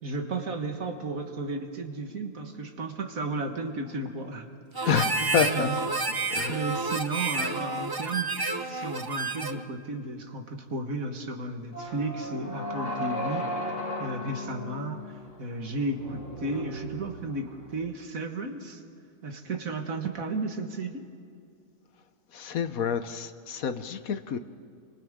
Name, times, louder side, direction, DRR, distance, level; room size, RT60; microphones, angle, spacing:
voice 1, 0.0-4.5 4.8-5.8 6.1-6.2 6.5-8.3 8.7-13.5 14.0-18.8 19.2-21.1, right 2 dB, 60° right, 4 dB, 2.0 m, -34 dB
Harmonica, 4.7-9.7, right 3 dB, 30° right, 0.4 m, -30 dB
voice 2, 4.9-5.7 6.3-6.6 22.3-24.4, left 8 dB, 70° left, 10 dB, 1.3 m, -28 dB
sound 1, 11.7-17.7, left 1 dB, 55° left, 2.5 m, -36 dB
29.5 x 25.0 x 3.7 m, 2.4 s
omnidirectional pair, 1.6 m